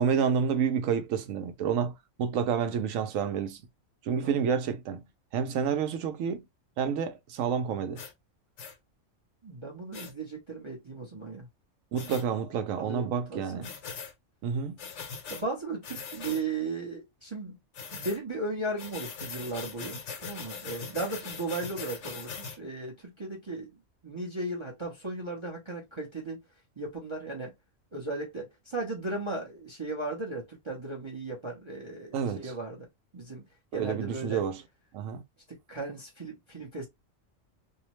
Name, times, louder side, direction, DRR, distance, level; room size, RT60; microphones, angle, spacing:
voice 1, 0.0-3.6 4.0-5.0 5.3-6.5 6.8-8.0 11.9-13.7 14.4-14.8 32.1-32.5 33.7-34.6 34.9-35.2, right 7 dB, 85° right, 1.0 m, -29 dB
sound 1, 8.0-8.1 8.6-8.8 9.9-10.1 12.0-12.2 13.6-14.1 14.8-15.4 15.8-16.4 17.7-18.2 18.8-22.6, left 6 dB, 70° left, 1.0 m, -41 dB
voice 2, 9.4-11.5 12.1-13.8 15.3-17.6 17.9-23.8 24.0-26.4 26.8-27.5 27.9-32.9 33.1-33.4 33.7-34.4 35.5-36.9, right 2 dB, 30° right, 0.6 m, -36 dB
2.7 x 2.0 x 2.9 m
omnidirectional pair, 1.3 m